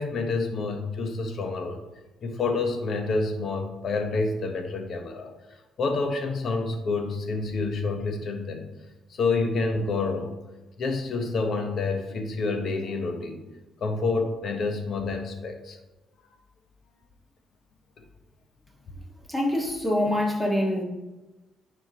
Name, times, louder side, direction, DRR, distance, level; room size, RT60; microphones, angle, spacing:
voice 1, 0.0-1.8 2.2-5.3 5.8-8.7 9.1-10.3 10.8-13.4 13.8-15.8, left 3 dB, 60° left, 5 dB, 1.1 m, -28 dB
voice 2, 19.3-20.8, left 1 dB, 10° left, -2 dB, 1.7 m, -25 dB
9.3 x 5.0 x 3.0 m, 1.1 s
cardioid pair, 90°, 0 cm